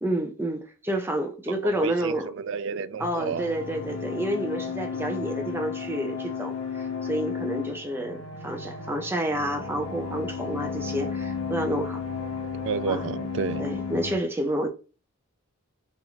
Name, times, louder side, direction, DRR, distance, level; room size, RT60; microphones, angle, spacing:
voice 1, 0.0-2.3 3.0-12.0 12.9-13.1 13.6-14.7, right 1 dB, 10° right, 0.5 m, -29 dB
voice 2, 1.6-3.5 12.5-13.6, right 6 dB, 60° right, 0.3 m, -31 dB
sound 1, 3.0-14.2, left 5 dB, 70° left, 0.6 m, -33 dB
4.0 x 2.6 x 2.9 m
head